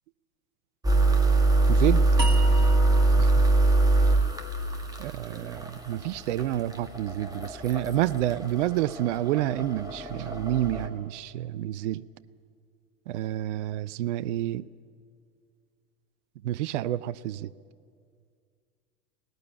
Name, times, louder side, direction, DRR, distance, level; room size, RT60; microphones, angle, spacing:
sound 1, 0.8-10.9, right 2 dB, 5° right, 1.7 m, -24 dB
voice 1, 1.7-2.1 2.6-2.7 3.2-3.3 5.0-12.0 13.1-14.7 16.4-17.5, right 13 dB, 50° right, 19 dB, 0.5 m, -29 dB
sound 2, 2.2-5.4, right 1 dB, 85° right, 1.9 m, -38 dB
18.5 x 14.5 x 10.0 m, 2.2 s
figure-of-eight pair, 95°, 49 cm